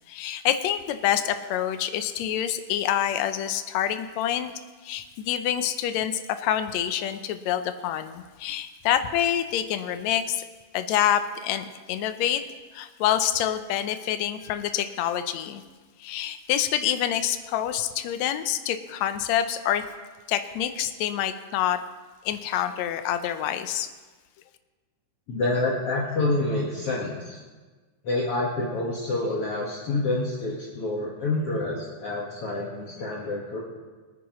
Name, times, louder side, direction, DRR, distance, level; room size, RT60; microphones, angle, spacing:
voice 1, 0.1-4.5 4.8-10.4 10.7-12.4 12.7-15.6 16.0-19.8 20.3-21.8 22.3-23.9, left 10 dB, 80° left, 9 dB, 1.6 m, -27 dB
voice 2, 25.3-27.4 28.0-33.6, left 2 dB, 50° left, -5 dB, 2.2 m, -27 dB
25.0 x 9.5 x 3.1 m, 1.3 s
omnidirectional pair, 3.8 m